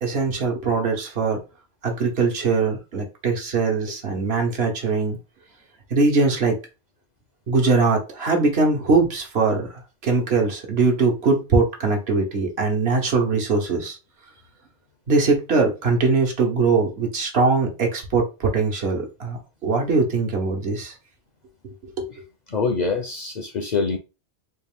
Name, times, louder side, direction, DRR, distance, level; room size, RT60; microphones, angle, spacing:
voice 1, 0.0-1.4 1.8-5.2 5.9-6.6 7.5-14.0 15.1-20.9 21.6-22.1, right 4 dB, 65° right, 1.2 m, -21 dB
voice 2, 22.5-24.0, left 4 dB, 50° left, 0.6 m, -24 dB
4.1 x 2.5 x 3.5 m
omnidirectional pair, 1.2 m